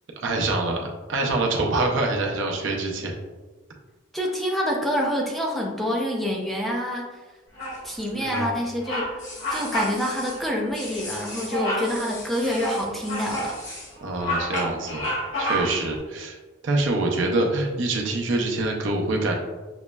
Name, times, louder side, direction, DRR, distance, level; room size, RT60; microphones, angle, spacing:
voice 1, 0.2-3.2 8.1-8.6 14.0-15.1 15.4-16.4 16.6-19.3, right 2 dB, 75° right, 0 dB, 0.6 m, -25 dB
voice 2, 4.1-7.1 7.8-9.1 9.5-13.6, equal, ahead, -2 dB, 0.5 m, -27 dB
Bird vocalization bird call bird song, 7.6-8.0 8.3-8.5 8.8-9.1 9.4-10.0 10.3-10.5 11.5-11.9 12.4-13.5 14.0-15.9, equal, 80° left, 1.2 m, -29 dB
sound 1, 7.6-8.6 9.2-10.4 10.7-13.9 14.5-14.9, left 2 dB, 40° left, 1.2 m, -39 dB
5.9 x 2.0 x 2.2 m, 1.3 s
head